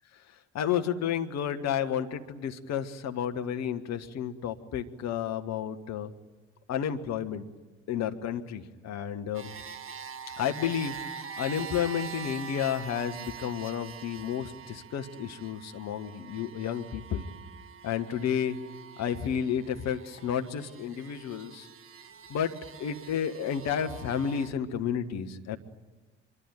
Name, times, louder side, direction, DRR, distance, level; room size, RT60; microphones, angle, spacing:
voice 1, 0.5-6.1 6.7-7.4 7.9-9.5 10.4-11.0 11.4-17.3 17.8-18.6 19.0-21.7 22.3-22.5 22.8-25.6, left 8 dB, 55° left, 7 dB, 1.6 m, -31 dB
sound 1, 9.3-24.5, right 6 dB, 40° right, 1.7 m, -44 dB
25.0 x 23.5 x 9.2 m, 1.2 s
figure-of-eight pair, 45°, 33 cm